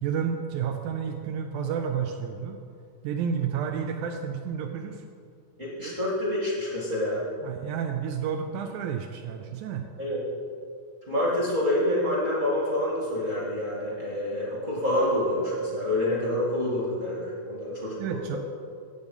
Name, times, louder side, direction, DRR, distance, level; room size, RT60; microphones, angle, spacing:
voice 1, 0.0-2.6 3.0-5.0 7.4-9.8 18.0-18.4, right 7 dB, 80° right, 5 dB, 1.8 m, -30 dB
voice 2, 5.6-7.2 10.0-10.2 11.1-18.4, left 1 dB, 30° right, -6 dB, 1.5 m, -27 dB
8.2 x 8.1 x 5.2 m, 2.2 s
omnidirectional pair, 3.9 m